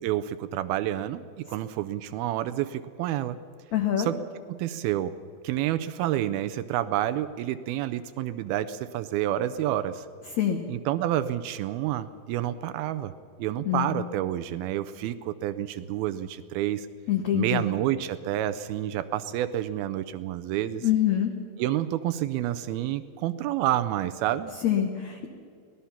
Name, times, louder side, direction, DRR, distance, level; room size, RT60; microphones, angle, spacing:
voice 1, 0.0-3.4 4.0-4.2 4.5-5.2 5.4-10.1 10.7-13.1 13.4-16.9 17.3-20.9 21.6-24.5, right 12 dB, 80° right, 12 dB, 2.2 m, -29 dB
voice 2, 3.7-4.1 10.4-10.6 13.7-14.0 17.1-17.6 20.8-21.3 24.6-25.3, left 11 dB, 70° left, 4 dB, 1.7 m, -25 dB
25.0 x 18.5 x 5.8 m, 2.3 s
omnidirectional pair, 4.9 m